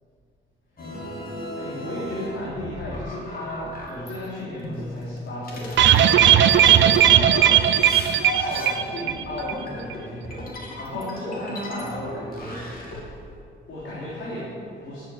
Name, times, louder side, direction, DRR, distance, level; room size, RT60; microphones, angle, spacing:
sound 1, 0.8-4.2 4.6-13.0, left 1 dB, 50° left, 3.1 m, -36 dB
voice 1, 1.5-8.0 8.3-13.2 13.7-15.0, left 1 dB, 70° left, -8 dB, 3.6 m, -34 dB
sound 2, 5.8-9.2 9.5-9.6 9.9-10.0, right 10 dB, 70° right, 0.6 m, -17 dB
11.0 x 9.0 x 7.3 m, 2.4 s
cardioid pair, 90°, 20 cm